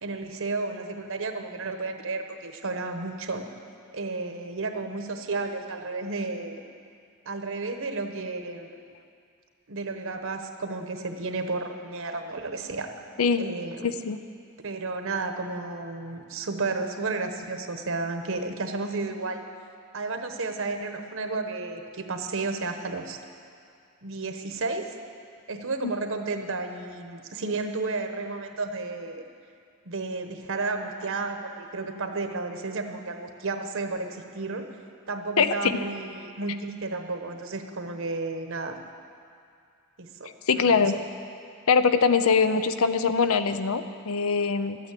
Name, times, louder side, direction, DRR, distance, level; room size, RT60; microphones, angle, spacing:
voice 1, 0.0-3.5 3.9-6.6 7.2-8.7 9.7-13.0 13.4-13.9 14.6-19.4 19.9-23.2 24.0-24.9 25.5-29.2 29.8-34.8 35.1-38.8 40.0-40.3 40.6-40.8, right 3 dB, 65° right, 6 dB, 1.0 m, -32 dB
voice 2, 35.4-35.8 40.5-41.0 41.7-44.8, left 5 dB, 80° left, 11 dB, 0.6 m, -22 dB
13.0 x 9.1 x 8.4 m, 2.4 s
head